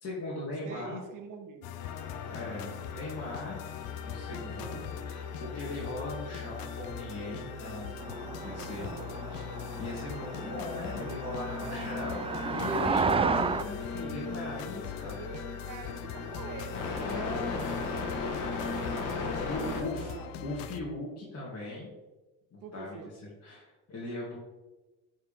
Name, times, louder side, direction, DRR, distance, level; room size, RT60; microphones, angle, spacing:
voice 1, 0.0-1.0 2.3-3.6 4.0-8.0 8.4-8.9 9.3-9.5 9.7-12.2 12.5-15.2 17.0-17.7 19.4-20.2 20.4-21.9 22.5-23.0 23.2-24.4, left 2 dB, 45° left, -7 dB, 2.6 m, -39 dB
voice 2, 0.6-1.7 4.4-4.8 8.4-9.2 11.6-12.7 14.8-17.4 19.2-20.4 22.6-23.1, right 5 dB, 60° right, 6 dB, 1.3 m, -46 dB
sound 1, 1.6-20.8, left 9 dB, 80° left, 0.6 m, -41 dB
sound 2, 1.8-19.8, left 3 dB, 60° left, 2.0 m, -39 dB
sound 3, 8.0-13.6, right 5 dB, 15° right, 0.4 m, -33 dB
11.0 x 4.8 x 3.7 m, 1.1 s
cardioid pair, 95°, 35 cm